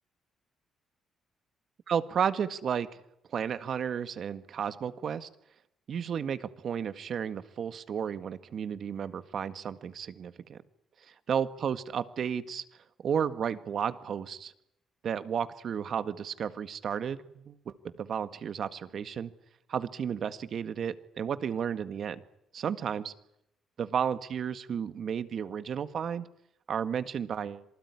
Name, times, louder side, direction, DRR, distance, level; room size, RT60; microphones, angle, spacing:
voice 1, 1.9-2.9 3.3-5.3 5.9-10.6 11.1-12.6 13.0-14.5 15.0-19.3 19.7-22.2 22.5-23.1 23.8-26.3 26.7-27.6, right 7 dB, 60° right, 12 dB, 1.8 m, -33 dB
27.0 x 19.5 x 9.8 m, 0.81 s
cardioid pair, 90°, 0 cm